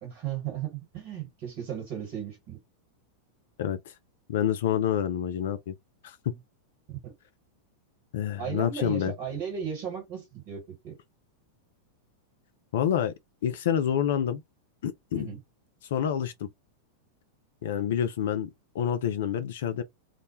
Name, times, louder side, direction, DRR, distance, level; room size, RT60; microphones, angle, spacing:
voice 1, 0.0-2.6 7.0-7.1 8.4-11.0 15.1-15.4, right 8 dB, 45° right, 1.2 m, -35 dB
voice 2, 3.6-3.9 4.3-5.7 6.0-6.2 8.1-9.1 12.7-13.1 13.4-14.4 14.8-15.3 15.9-16.5 17.6-19.8, left 9 dB, 55° left, 0.3 m, -28 dB
2.1 x 2.0 x 2.9 m
figure-of-eight pair, 90°, 0 cm